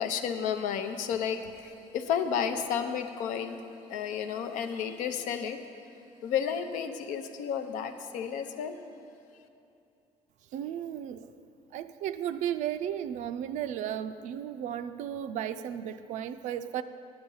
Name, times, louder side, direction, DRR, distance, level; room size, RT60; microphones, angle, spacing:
voice 1, 0.0-3.6 3.9-5.6 6.2-8.8, left 7 dB, 80° left, 8 dB, 0.7 m, -32 dB
voice 2, 10.5-11.3 11.7-16.8, right 10 dB, 70° right, 10 dB, 0.4 m, -34 dB
10.0 x 7.8 x 5.5 m, 2.8 s
cardioid pair, 130°, 13 cm